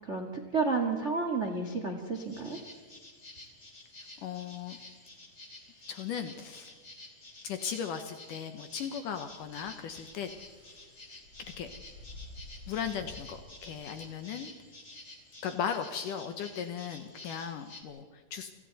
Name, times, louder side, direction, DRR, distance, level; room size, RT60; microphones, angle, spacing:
voice 1, 0.5-2.6, right 4 dB, 85° right, 4 dB, 0.6 m, -31 dB
sound 1, 2.1-17.8, left 2 dB, 20° left, 2.5 m, -51 dB
voice 2, 4.2-4.8 5.9-6.7 7.4-10.3 11.1-11.7 12.7-14.5 15.4-18.5, left 7 dB, 70° left, 8 dB, 2.1 m, -37 dB
sound 2, 9.3-14.3, left 1 dB, 40° right, 8.4 m, -51 dB
29.0 x 25.5 x 4.1 m, 1.5 s
omnidirectional pair, 4.9 m